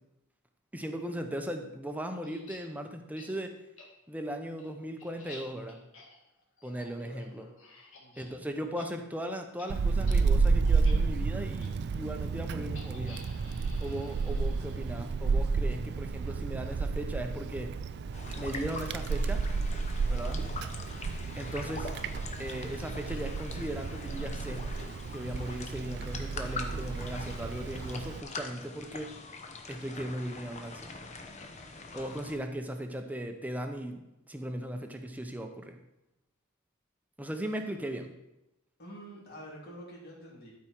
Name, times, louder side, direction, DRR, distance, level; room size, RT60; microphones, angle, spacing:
voice 1, 0.7-3.6 4.1-5.8 6.6-7.4 8.2-13.2 13.8-17.7 18.4-19.4 20.1-20.5 21.4-21.9 22.4-24.7 25.1-29.1 29.7-30.9 31.9-35.8 37.2-38.1, right 1 dB, 10° right, 5 dB, 0.7 m, -38 dB
sound 1, 2.2-2.6 3.1-3.3 3.8-3.9 4.3-8.3 8.6-8.9 9.1-9.3 9.6-9.7 10.0-10.2 10.6-10.9 11.6-11.7 12.7-15.1, left 3 dB, 65° left, 2.0 m, -52 dB
voice 2, 7.0-7.6 8.0-8.4 38.8-40.5, equal, 50° left, -4 dB, 3.1 m, -48 dB
Wind, 9.7-28.2, right 4 dB, 55° right, 0.3 m, -31 dB
sound 2, 18.1-32.4, left 3 dB, 35° left, 0.8 m, -43 dB
12.5 x 4.7 x 4.5 m, 0.91 s
head